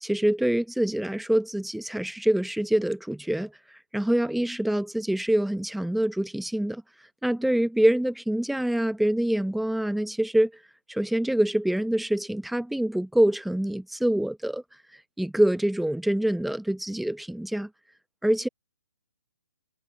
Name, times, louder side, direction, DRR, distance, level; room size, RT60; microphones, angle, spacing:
voice 1, 0.0-3.5 3.9-6.8 7.2-10.5 10.9-14.6 15.2-17.7 18.2-18.5, right 1 dB, ahead, 0.8 m, -25 dB
hypercardioid pair, 145°, 9 cm